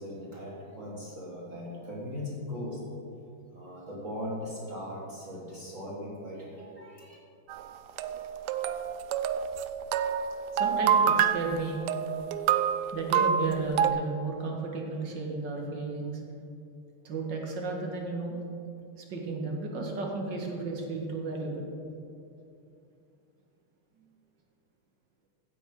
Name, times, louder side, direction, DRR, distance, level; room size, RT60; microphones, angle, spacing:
voice 1, 0.0-2.8 3.5-7.2, left 1 dB, 40° right, -4 dB, 1.9 m, -39 dB
sound 1, 7.5-13.9, right 8 dB, 90° right, 0.9 m, -27 dB
voice 2, 10.5-11.8 12.9-16.2 17.0-18.4 19.0-21.7, right 3 dB, 55° right, 0 dB, 2.2 m, -33 dB
15.5 x 9.0 x 3.8 m, 2.6 s
omnidirectional pair, 2.4 m